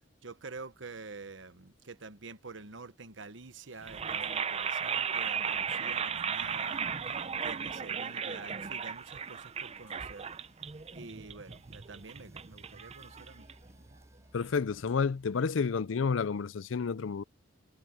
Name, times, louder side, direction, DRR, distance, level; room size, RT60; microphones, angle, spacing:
voice 1, 0.2-10.3 10.9-13.5, right 3 dB, 80° right, 1.2 m, -48 dB
sound 1, 3.4-16.2, right 1 dB, 15° right, 5.6 m, -64 dB
sound 2, 3.8-13.9, right 6 dB, 35° right, 0.6 m, -36 dB
voice 2, 14.3-17.2, left 5 dB, 90° left, 0.5 m, -30 dB
head